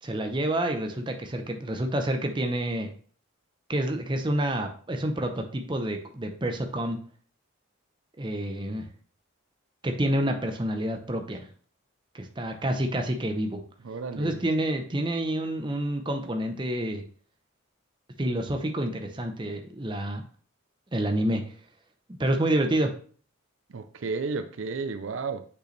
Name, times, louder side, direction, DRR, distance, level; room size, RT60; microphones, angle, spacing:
voice 1, 0.0-2.9 3.7-7.0 8.2-8.9 9.8-11.5 12.1-13.6 14.2-17.0 18.2-20.2 20.9-21.4 22.2-22.9, right 1 dB, 20° right, 0.6 m, -28 dB
voice 2, 13.8-14.4 23.7-25.5, right 4 dB, 65° right, 0.5 m, -32 dB
6.6 x 5.5 x 3.2 m
head